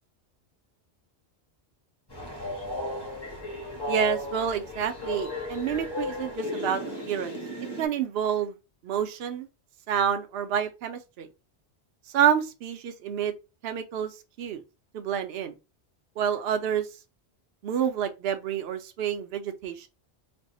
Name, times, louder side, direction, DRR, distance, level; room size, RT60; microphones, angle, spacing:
Train, 2.1-7.9, left 1 dB, 25° left, 0.9 m, -34 dB
voice 1, 3.9-7.4 7.8-8.6 8.8-9.5 9.9-11.3 12.1-13.3 13.6-14.6 14.9-15.5 16.2-16.9 17.6-19.9, right 9 dB, 70° right, 0.8 m, -28 dB
3.4 x 2.0 x 3.9 m
omnidirectional pair, 1.1 m